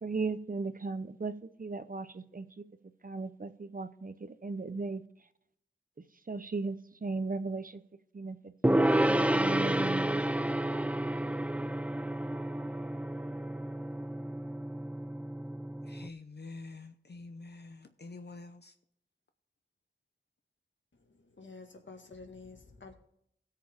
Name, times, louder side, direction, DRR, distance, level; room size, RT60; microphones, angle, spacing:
voice 1, 0.0-2.6 3.0-5.0 6.3-7.8 8.1-10.2, right 3 dB, 45° right, 0.8 m, -37 dB
Gong, 8.6-16.1, right 1 dB, 5° right, 0.4 m, -30 dB
voice 2, 15.8-18.7, left 3 dB, 60° left, 0.7 m, -47 dB
voice 3, 20.9-22.9, left 4 dB, 75° left, 1.7 m, -50 dB
17.0 x 6.7 x 3.6 m
wide cardioid pair, 65°, 20 cm